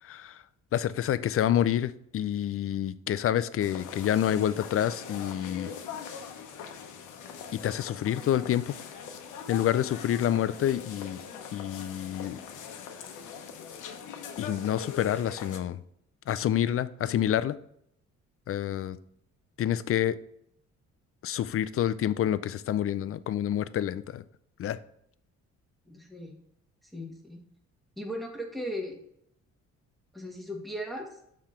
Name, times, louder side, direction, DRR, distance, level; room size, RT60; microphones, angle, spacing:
voice 1, 0.1-0.4 0.7-5.7 7.6-8.8 9.5-11.2 11.5-12.4 14.4-15.8 16.3-17.5 18.5-19.0 19.6-20.2 21.2-24.2 24.6-24.8, left 11 dB, 50° left, 0.5 m, -28 dB
sound 1, 3.6-15.6, left 7 dB, 90° left, 0.9 m, -42 dB
voice 2, 25.9-26.3 26.9-27.4 28.0-29.0 30.1-31.1, equal, ahead, 1.4 m, -37 dB
5.7 x 4.4 x 4.9 m
cardioid pair, 90°, 30 cm